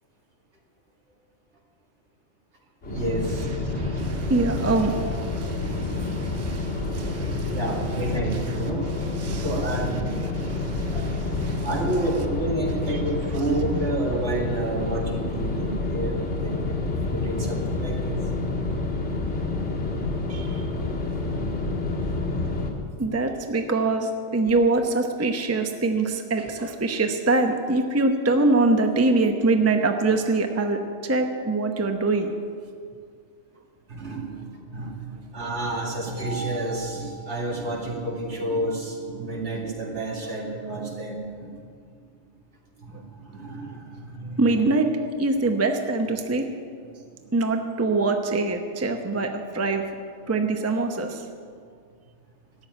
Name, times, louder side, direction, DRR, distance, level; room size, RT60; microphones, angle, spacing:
sound 1, 2.8-22.7, left 2 dB, 65° left, 2.5 m, -28 dB
voice 1, 2.8-3.5 4.2-4.3 7.5-8.9 9.4-10.4 10.9-11.1 11.5-18.3 33.9-41.6 41.9-42.1 42.7-44.6 47.0-47.4, right 2 dB, 65° right, -1 dB, 2.4 m, -30 dB
voice 2, 3.7-7.6 9.2-9.5 10.4-11.1 11.4-11.7 20.3-20.7 23.0-32.3 44.4-44.9 45.2-46.5 47.3-49.8 50.3-51.3, right 3 dB, 15° right, 5 dB, 0.8 m, -24 dB
13.5 x 7.8 x 9.9 m, 2.1 s
omnidirectional pair, 1.3 m